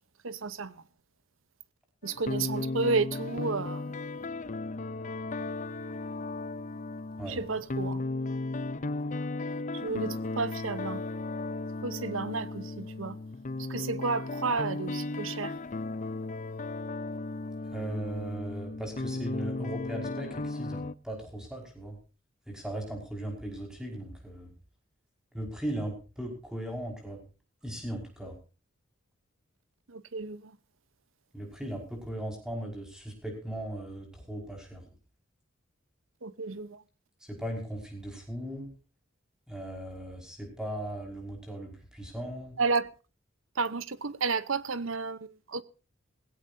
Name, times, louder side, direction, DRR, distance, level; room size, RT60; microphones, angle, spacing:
voice 1, 0.2-0.7 2.0-3.9 7.3-8.0 9.7-11.0 11.8-13.2 13.6-15.5 29.9-30.5 36.2-36.8 42.6-42.9 43.6-45.6, right 4 dB, 85° right, 0.9 m, -32 dB
sound 1, 2.0-20.9, left 2 dB, 40° left, 0.6 m, -35 dB
voice 2, 17.7-22.0 22.5-24.5 25.3-27.2 27.6-28.4 31.3-34.8 37.2-38.7 39.5-42.6, right 1 dB, 5° right, 5.4 m, -38 dB
18.5 x 16.5 x 2.7 m
head